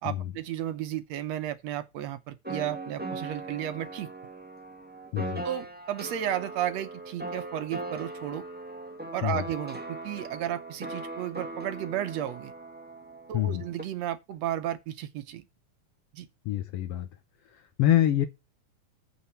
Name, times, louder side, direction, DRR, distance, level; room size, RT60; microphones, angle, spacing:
voice 1, 0.0-4.1 5.4-8.5 9.1-12.5 13.3-15.4 16.1-16.3, right 11 dB, 70° right, 1.8 m, -33 dB
sound 1, 2.4-13.8, right 2 dB, 5° right, 1.1 m, -39 dB
voice 2, 5.1-5.4 9.2-9.4 13.3-13.6 16.4-17.1 17.8-18.3, left 12 dB, 70° left, 1.6 m, -25 dB
8.6 x 6.0 x 5.7 m
omnidirectional pair, 3.5 m